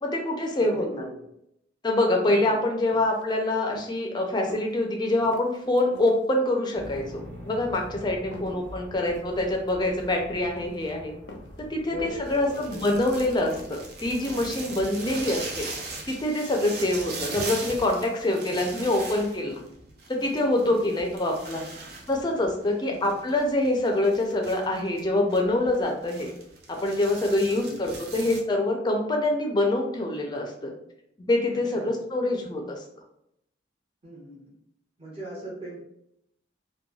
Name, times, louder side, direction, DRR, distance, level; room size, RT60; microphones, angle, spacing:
voice 1, 0.0-0.9 1.8-11.1 11.6-15.7 16.1-19.6 20.1-21.7 22.1-26.3 26.8-30.7 31.2-32.8, left 1 dB, 25° left, 1 dB, 0.4 m, -25 dB
voice 2, 0.6-1.2 2.3-2.6 8.3-8.6 11.9-12.8 15.1-15.2 18.4-18.6 20.6-21.0 22.8-23.1 27.4-27.8 31.7-32.0 34.0-34.6 35.0-35.8, left 1 dB, 30° right, -5 dB, 0.9 m, -40 dB
sound 1, 2.9-3.2 3.7-4.0 4.4-4.7 5.2-6.2 6.7-7.0 7.5-7.9 8.3-8.7 9.1-9.4 9.7-10.1 10.6-10.9 11.3-11.6 12.0-12.3 12.8-13.2 13.5-13.8 14.3-14.6, left 2 dB, 75° left, 0.5 m, -46 dB
sound 2, 6.7-14.5, equal, 85° right, 1.2 m, -45 dB
sound 3, 12.3-28.4, right 3 dB, 55° right, 0.5 m, -40 dB
3.0 x 2.2 x 2.3 m, 0.77 s
head